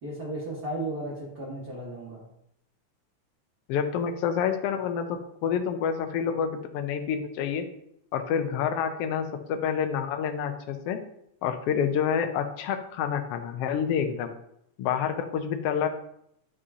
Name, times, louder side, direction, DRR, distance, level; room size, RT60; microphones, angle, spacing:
voice 1, 0.0-2.2, right 1 dB, 35° right, -7 dB, 1.9 m, -35 dB
voice 2, 3.7-7.6 8.1-11.0 11.4-14.3 14.8-15.9, left 7 dB, 75° left, 6 dB, 1.5 m, -28 dB
11.0 x 5.2 x 2.8 m, 0.75 s
omnidirectional pair, 3.3 m